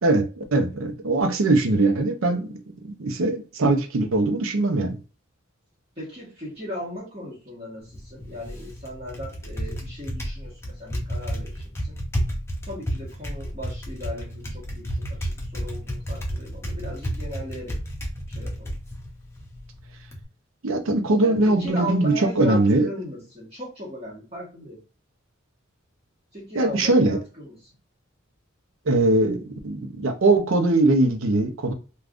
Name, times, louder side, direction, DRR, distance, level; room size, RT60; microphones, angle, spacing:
voice 1, 0.0-2.6 2.8-5.0 20.6-22.9 26.5-27.2 28.9-31.7, right 2 dB, 80° right, 0.6 m, -21 dB
voice 2, 6.0-12.0 12.6-17.8 18.3-18.7 21.2-24.8 26.3-27.7, equal, 30° right, 1.3 m, -37 dB
Typing, 7.8-20.2, equal, 15° left, 0.6 m, -32 dB
3.4 x 2.3 x 2.5 m
head